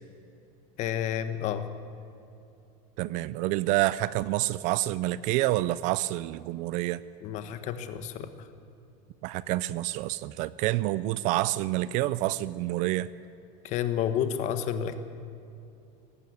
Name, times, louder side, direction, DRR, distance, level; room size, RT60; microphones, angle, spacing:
voice 1, 0.8-1.6 7.2-8.3 13.6-15.0, left 9 dB, 40° left, 9 dB, 1.4 m, -30 dB
voice 2, 3.0-7.0 9.2-13.1, right 16 dB, 40° right, 18 dB, 0.4 m, -28 dB
18.5 x 15.5 x 9.7 m, 2.8 s
supercardioid pair, 165°, 19 cm